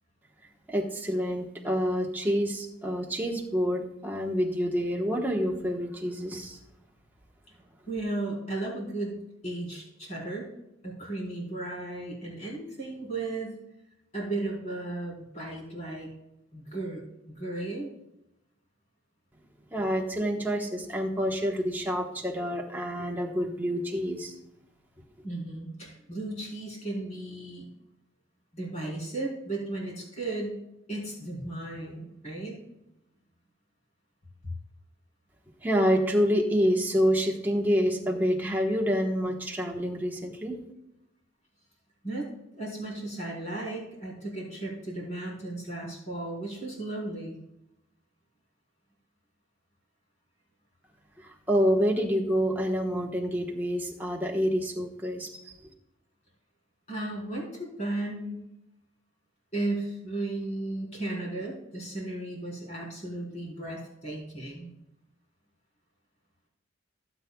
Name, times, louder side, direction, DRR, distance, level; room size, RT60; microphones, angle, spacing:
voice 1, 0.7-6.6 19.7-24.3 35.6-40.6 51.2-55.7, equal, 10° right, 0 dB, 1.2 m, -27 dB
voice 2, 7.9-10.5 10.8-13.6 14.1-16.1 16.5-17.0 17.3-17.9 25.2-27.6 28.5-30.6 30.9-32.6 42.0-42.3 42.6-47.4 56.9-58.5 59.5-64.7, right 2 dB, 35° left, -4 dB, 4.3 m, -35 dB
16.5 x 8.2 x 2.3 m, 0.87 s
head